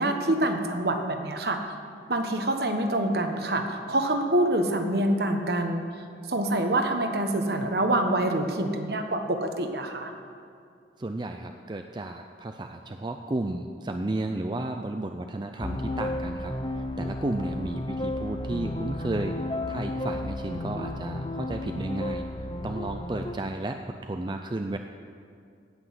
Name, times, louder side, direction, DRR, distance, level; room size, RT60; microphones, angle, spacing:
voice 1, 0.0-1.6 2.1-5.8 6.3-10.1, right 1 dB, 60° right, 5 dB, 1.1 m, -26 dB
voice 2, 11.0-19.4 19.7-22.2 22.6-24.8, right 2 dB, 25° right, 5 dB, 0.4 m, -33 dB
sound 1, 15.6-23.3, left 1 dB, 25° left, 0.6 m, -33 dB
16.5 x 6.2 x 7.8 m, 2.3 s
head